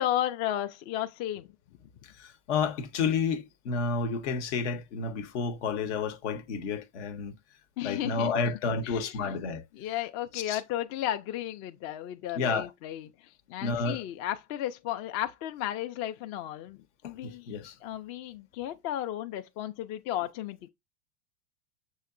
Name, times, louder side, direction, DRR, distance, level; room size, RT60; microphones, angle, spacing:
voice 1, 0.0-1.5 7.8-8.3 8.8-9.3 9.8-16.8 17.0-17.5 17.8-20.7, left 12 dB, 45° left, 0.5 m, -34 dB
voice 2, 2.2-7.4 7.8-9.6 10.3-10.6 12.3-12.7 13.6-14.0 17.0-17.7, left 5 dB, 75° left, 0.9 m, -31 dB
6.4 x 2.8 x 2.5 m
hypercardioid pair, 110°, 36 cm